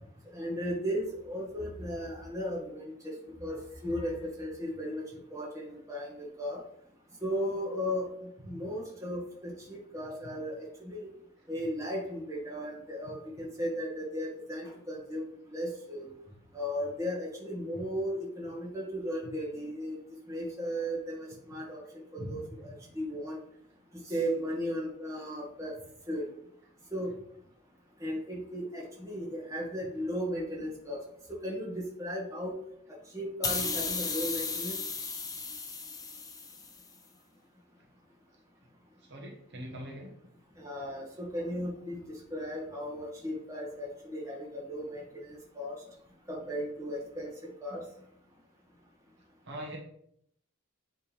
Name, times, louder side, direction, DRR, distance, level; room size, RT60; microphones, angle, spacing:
voice 1, 0.3-3.1 3.4-5.0 5.3-6.6 7.2-11.1 11.5-16.1 16.5-20.0 20.3-21.8 22.1-23.4 24.0-25.8 26.1-26.3 26.9-27.1 28.0-31.0 31.4-32.5 33.1-34.8 40.6-42.0 42.3-45.8 46.3-47.3 47.6-47.8, equal, 15° right, -3 dB, 1.7 m, -36 dB
sound 1, 33.4-36.8, left 4 dB, 15° left, 0.7 m, -35 dB
voice 2, 39.1-40.1 49.4-49.8, equal, 55° right, -1 dB, 1.2 m, -41 dB
8.4 x 3.5 x 3.3 m, 0.70 s
head